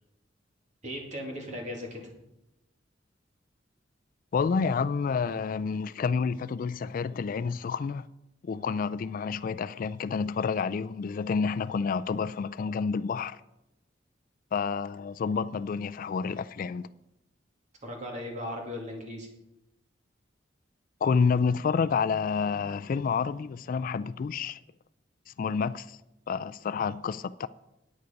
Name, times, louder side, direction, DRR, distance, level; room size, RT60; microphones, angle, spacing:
voice 1, 0.8-2.1 17.8-19.3, left 1 dB, 40° right, 2.4 m, -37 dB
voice 2, 4.3-8.0 8.4-13.4 14.5-16.9 21.0-24.6 25.3-26.0 26.3-27.5, left 5 dB, 50° left, 0.3 m, -29 dB
9.6 x 9.1 x 5.2 m
head